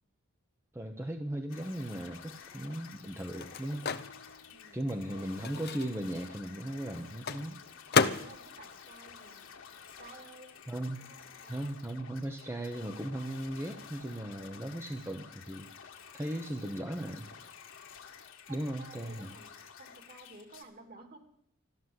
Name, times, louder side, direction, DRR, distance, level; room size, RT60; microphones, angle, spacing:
voice 1, 0.7-3.9 4.7-7.6 10.7-11.0 11.5-17.3 18.5-19.3, right 1 dB, 10° right, 4 dB, 0.9 m, -37 dB
sound 1, 1.5-20.6, left 7 dB, 65° left, 2.2 m, -51 dB
Microwave oven, 2.0-10.1 10.4-12.3, left 5 dB, 50° left, 0.7 m, -36 dB
voice 2, 2.4-2.8 4.5-4.8 5.1-5.5 8.1-9.5 10.0-10.6 11.0-11.8 18.5-19.5 19.8-21.2, right 2 dB, 45° right, 5 dB, 2.6 m, -54 dB
13.5 x 13.0 x 7.9 m, 0.68 s
head